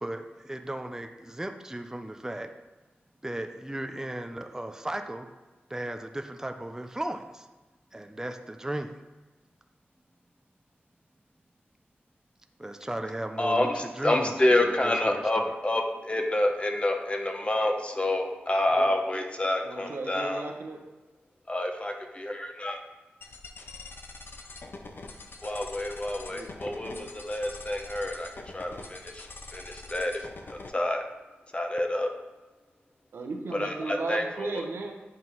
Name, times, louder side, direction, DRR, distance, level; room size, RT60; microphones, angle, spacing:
voice 1, 0.0-2.5 3.2-5.3 5.7-7.5 7.9-9.0 12.6-14.3 14.6-15.5, right 1 dB, 15° right, 6 dB, 0.5 m, -36 dB
voice 2, 13.4-20.5 21.5-22.8 25.4-31.0 31.5-32.1 33.5-34.6, left 1 dB, 30° left, 3 dB, 0.9 m, -28 dB
voice 3, 19.6-20.8 26.2-27.1 33.1-34.9, right 3 dB, 85° right, 3 dB, 0.8 m, -36 dB
sound 1, 23.2-30.7, left 3 dB, 60° left, 0.6 m, -44 dB
7.8 x 2.8 x 5.5 m, 1.2 s
cardioid pair, 55°, 4 cm